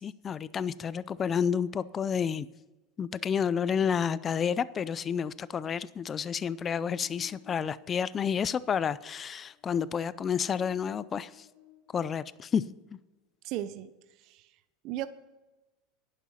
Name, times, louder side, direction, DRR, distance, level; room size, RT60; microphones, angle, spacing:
voice 1, 0.0-2.5 3.0-11.5 11.9-12.6, left 7 dB, 25° left, 18 dB, 0.4 m, -30 dB
Buzz, 3.2-12.6, left 11 dB, 85° left, 2.3 m, -60 dB
voice 2, 13.4-13.9 14.2-14.5 14.8-15.1, right 13 dB, 50° right, 12 dB, 0.6 m, -35 dB
11.0 x 9.9 x 5.6 m, 1.1 s
supercardioid pair, 145°, 0 cm